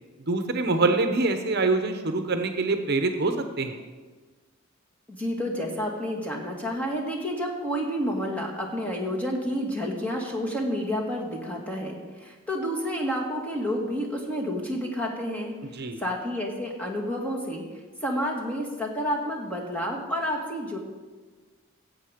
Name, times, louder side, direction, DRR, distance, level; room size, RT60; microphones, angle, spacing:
voice 1, 0.3-3.8 15.7-16.0, right 3 dB, 55° right, 7 dB, 0.8 m, -25 dB
voice 2, 5.1-15.5 16.0-17.6 18.0-20.8, equal, 5° left, -2 dB, 1.9 m, -30 dB
15.5 x 7.9 x 5.1 m, 1.4 s
head